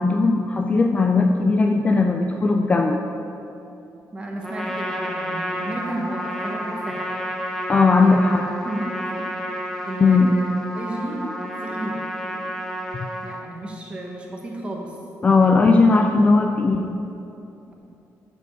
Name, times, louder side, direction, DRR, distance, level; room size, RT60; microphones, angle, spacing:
voice 1, 0.0-3.0 7.7-8.4 10.0-10.4 15.2-17.0, left 3 dB, 20° left, 4 dB, 0.3 m, -18 dB
voice 2, 4.1-7.0 7.8-8.2 8.6-8.8 9.1-9.3 9.8-10.5 10.7-11.3 11.6-12.0 13.2-15.0 15.3-15.8 16.2-16.3, right 1 dB, 20° right, -1 dB, 1.2 m, -33 dB
Trumpet, 4.4-13.4, equal, 5° left, 0.9 m, -30 dB
10.5 x 5.3 x 6.4 m, 2.8 s
cardioid pair, 175°, 6 cm